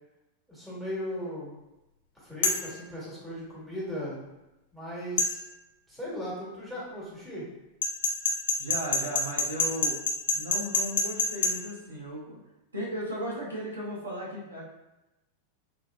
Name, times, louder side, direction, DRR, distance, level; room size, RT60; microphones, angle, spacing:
voice 1, 0.5-1.5 2.2-4.2 4.7-5.4 5.9-7.5, equal, ahead, -8 dB, 1.3 m, -37 dB
sound 1, 2.4-2.7 5.2-5.3 7.8-11.5, left 3 dB, 60° left, 0.4 m, -25 dB
voice 2, 8.6-10.0 10.3-12.4 12.7-14.6, equal, 75° right, -5 dB, 0.7 m, -36 dB
3.0 x 2.5 x 2.4 m, 0.97 s
figure-of-eight pair, 90°, 0 cm